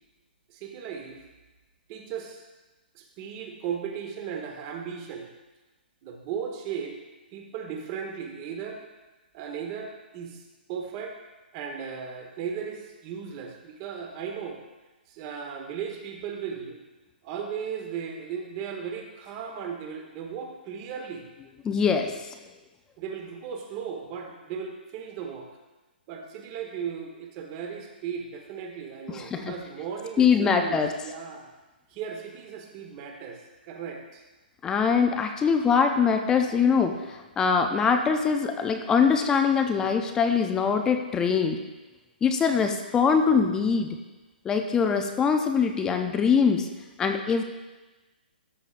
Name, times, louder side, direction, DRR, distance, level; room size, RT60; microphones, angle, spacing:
voice 1, 0.5-1.2 1.9-2.4 2.9-5.3 6.0-7.0 7.3-8.8 9.3-10.4 10.7-11.2 11.5-14.6 15.1-16.8 17.2-21.3 23.0-25.5 26.1-31.5 31.9-34.2, right 7 dB, 30° right, 3 dB, 1.1 m, -36 dB
voice 2, 21.6-22.3 29.1-29.5 30.2-30.9 34.6-41.6 42.2-44.0 44.4-46.7 47.0-47.4, left 6 dB, 10° left, 5 dB, 0.4 m, -23 dB
13.0 x 7.0 x 2.5 m, 1.1 s
hypercardioid pair, 155°, 6 cm